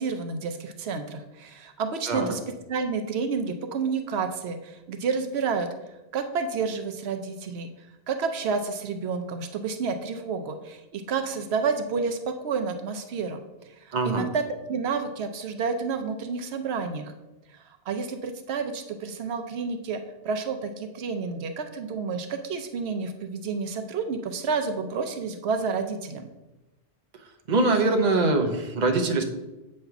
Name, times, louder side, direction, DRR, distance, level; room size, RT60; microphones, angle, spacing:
voice 1, 0.0-2.4 2.7-5.7 6.1-7.7 8.1-13.4 13.7-14.4 14.7-17.1 17.5-26.3, right 5 dB, 80° right, 6 dB, 0.9 m, -30 dB
voice 2, 13.9-14.3 27.1-29.2, right 2 dB, 50° right, 5 dB, 0.9 m, -23 dB
7.9 x 3.2 x 5.8 m, 1.0 s
omnidirectional pair, 1.1 m